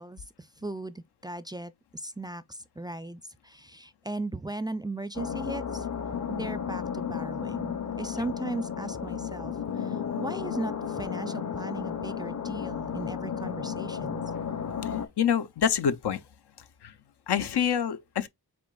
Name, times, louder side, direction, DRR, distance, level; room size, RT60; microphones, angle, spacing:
voice 1, 0.0-5.9 6.3-14.2, right 2 dB, 10° right, 0.3 m, -37 dB
sound 1, 5.1-15.1, left 7 dB, 50° left, 0.7 m, -33 dB
voice 2, 14.8-16.2 16.8-17.0 17.3-18.3, left 8 dB, 90° left, 0.6 m, -27 dB
6.0 x 3.8 x 2.3 m
wide cardioid pair, 75°, 38 cm